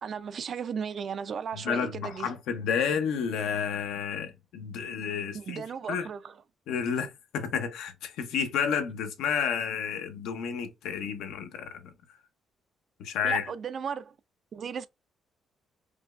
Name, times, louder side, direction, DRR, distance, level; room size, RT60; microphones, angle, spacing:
voice 1, 0.0-2.3 5.3-6.4 13.2-14.2 14.5-14.9, right 7 dB, 55° right, 0.4 m, -35 dB
voice 2, 1.6-5.6 5.9-6.1 6.7-11.9 13.0-13.4, left 7 dB, 90° left, 0.7 m, -31 dB
4.9 x 2.2 x 2.4 m
cardioid pair, 90°, 0 cm